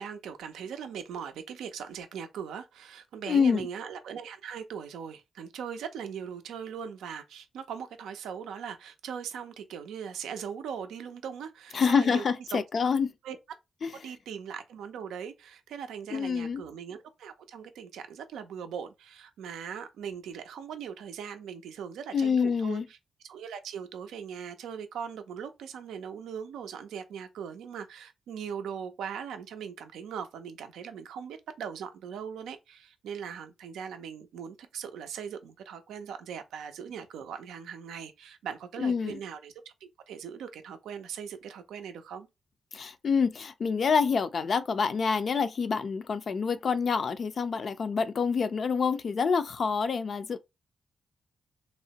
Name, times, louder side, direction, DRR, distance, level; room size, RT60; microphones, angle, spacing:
voice 1, 0.0-12.2 12.5-12.6 13.2-13.4 14.0-22.8 23.2-39.5 39.8-42.3, right 7 dB, 85° right, 0.4 m, -40 dB
voice 2, 3.3-3.7 11.7-13.1 13.8-13.9 16.1-16.6 22.1-22.9 38.8-39.2 42.7-50.4, left 5 dB, 60° left, 0.4 m, -27 dB
2.9 x 2.1 x 2.7 m
supercardioid pair, 50°, 0 cm